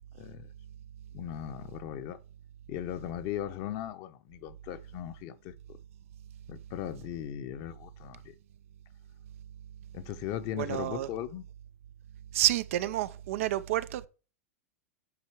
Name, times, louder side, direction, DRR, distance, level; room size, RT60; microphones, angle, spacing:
voice 1, 0.2-0.5 1.1-2.2 2.7-5.5 6.5-8.3 9.9-11.5, left 11 dB, 45° left, 1.0 m, -38 dB
voice 2, 10.6-11.1 12.3-14.1, right 14 dB, 60° right, 0.6 m, -29 dB
8.6 x 4.5 x 4.6 m
hypercardioid pair, 95°, 8 cm